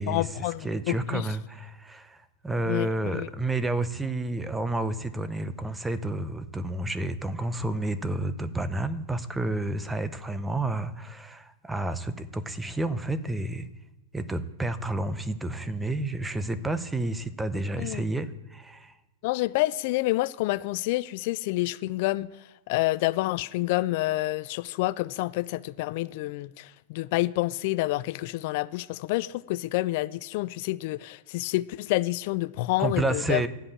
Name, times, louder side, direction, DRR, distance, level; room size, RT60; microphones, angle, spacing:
voice 1, 0.1-1.3 2.7-3.3 17.8-18.0 19.2-22.3 22.7-33.4, left 19 dB, 55° left, 0.3 m, -28 dB
voice 2, 0.6-13.7 14.1-19.0 32.8-33.5, right 2 dB, 10° right, 0.7 m, -30 dB
11.5 x 5.4 x 8.5 m
hypercardioid pair, 130°, 0 cm